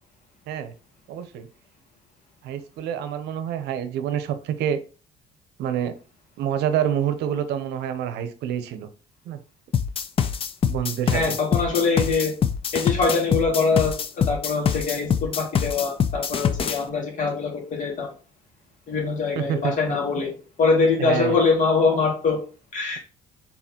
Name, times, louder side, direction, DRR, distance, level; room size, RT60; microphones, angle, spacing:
voice 1, 1.1-1.5 2.4-4.8 5.6-5.9 6.4-8.9 9.3-9.4 10.7-11.4 19.4-20.0 21.0-21.4, right 9 dB, 80° right, 10 dB, 0.6 m, -27 dB
sound 1, 9.7-16.8, left 7 dB, 35° left, 0.4 m, -24 dB
voice 2, 11.1-12.4 12.7-13.9 14.3-18.1 18.9-20.3 20.6-22.4 22.7-23.0, left 4 dB, 50° left, -1 dB, 2.1 m, -23 dB
4.2 x 3.9 x 2.9 m, 0.36 s
cardioid pair, 110°, 17 cm